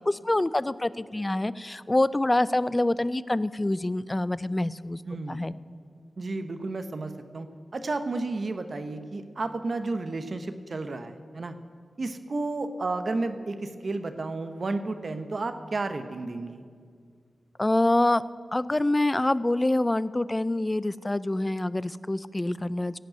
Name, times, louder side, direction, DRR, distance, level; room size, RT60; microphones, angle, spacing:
voice 1, 0.1-5.0 5.3-5.5 17.6-18.2 18.5-23.0, left 1 dB, 20° left, 17 dB, 0.3 m, -26 dB
voice 2, 5.0-5.4 6.2-7.5 7.7-11.6 12.0-16.6, right 3 dB, 55° right, 9 dB, 0.9 m, -32 dB
16.0 x 5.3 x 8.9 m, 2.1 s
wide cardioid pair, 90°, 0 cm